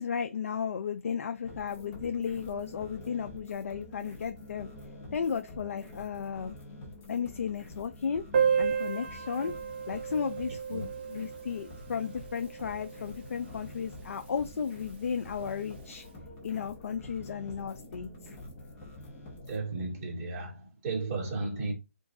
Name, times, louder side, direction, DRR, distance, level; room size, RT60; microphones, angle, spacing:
voice 1, 0.0-4.7 5.1-6.6 7.1-8.2 8.6-9.5 9.9-16.0 16.4-18.1, left 7 dB, 65° left, 0.4 m, -34 dB
sound 1, 1.4-19.6, left 1 dB, 15° left, 0.7 m, -47 dB
Piano, 8.3-13.7 14.0-14.1 14.3-14.4 14.8-14.9 15.6-15.8, right 7 dB, 40° right, 0.6 m, -32 dB
voice 2, 19.5-21.7, right 3 dB, 25° right, 1.8 m, -34 dB
3.0 x 2.5 x 3.7 m
hypercardioid pair, 155°, 8 cm